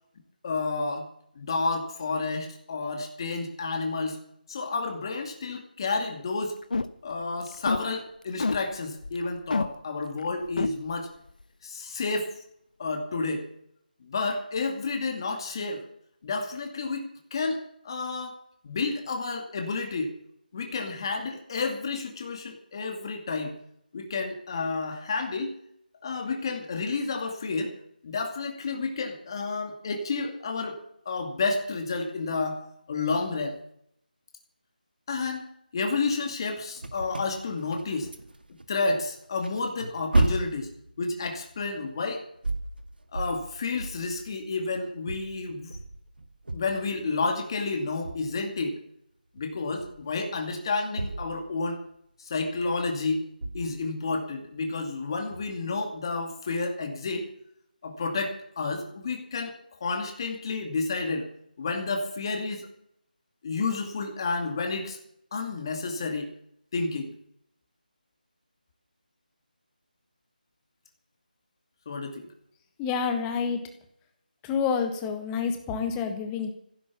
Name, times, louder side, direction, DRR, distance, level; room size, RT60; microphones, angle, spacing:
voice 1, 0.4-1.1 1.4-4.2 4.5-6.6 7.0-11.1 11.6-12.4 12.8-13.5 14.0-15.8 16.2-18.3 18.6-20.1 20.5-23.6 23.9-25.6 26.0-27.7 28.0-30.8 31.1-32.6 32.9-33.6 35.1-38.1 38.7-40.7 41.0-42.2 43.1-45.8 46.5-48.8 49.3-51.8 52.2-53.2 53.5-57.3 57.8-61.3 61.6-62.7 63.4-65.0 65.3-66.3 66.7-67.2 71.9-72.3, left 3 dB, 30° left, 3 dB, 2.3 m, -30 dB
sound 1, 6.6-7.1 7.4-7.8 8.4-8.6 9.0-9.2 9.5-9.7 10.2-10.3 10.6-10.7, left 3 dB, 60° left, 1.2 m, -27 dB
sound 2, 36.8-38.7 39.0-44.5 45.0-47.3 48.0-48.4 49.4-50.2 50.5-52.0 52.8-52.9 53.4-53.9 55.3-55.5, right 2 dB, 75° right, 2.0 m, -33 dB
voice 2, 72.8-73.6 74.4-76.5, left 6 dB, 10° left, 6 dB, 1.3 m, -28 dB
15.5 x 11.0 x 7.1 m, 0.72 s
figure-of-eight pair, 170°, 5 cm